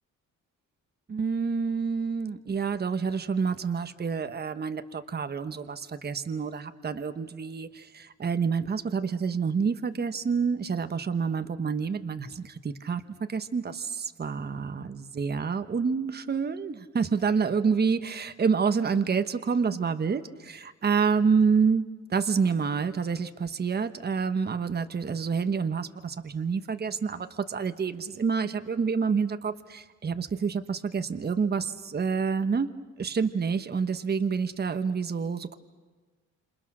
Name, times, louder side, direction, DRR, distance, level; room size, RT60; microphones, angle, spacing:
voice 1, 1.1-13.0 13.3-32.7 33.0-35.5, right 5 dB, 35° right, 9 dB, 1.3 m, -28 dB
28.5 x 27.5 x 6.3 m, 1.3 s
cardioid pair, 90°, 30 cm